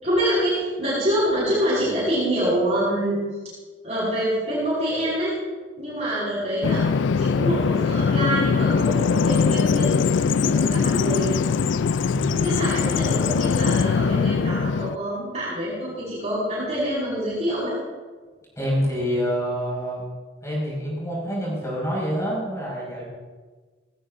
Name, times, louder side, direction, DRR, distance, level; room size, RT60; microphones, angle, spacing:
voice 1, 0.0-3.2 3.8-5.4 5.8-6.8 7.2-11.3 12.3-17.7, equal, 35° right, -8 dB, 5.4 m, -26 dB
Bird vocalization bird call bird song, 6.6-15.0, left 5 dB, 85° left, 0.4 m, -21 dB
voice 2, 12.1-12.4 18.6-20.0 20.4-23.0, equal, 15° left, -5 dB, 5.6 m, -27 dB
18.5 x 17.5 x 2.7 m, 1.4 s
head